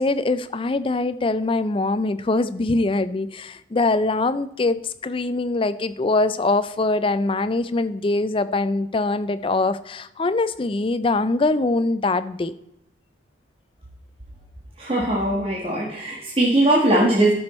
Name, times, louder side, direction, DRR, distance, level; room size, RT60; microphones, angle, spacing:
voice 1, 0.0-12.5, left 2 dB, 25° left, 14 dB, 0.4 m, -23 dB
voice 2, 14.8-17.3, right 1 dB, 30° right, -4 dB, 1.5 m, -20 dB
13.5 x 6.2 x 4.3 m, 0.82 s
head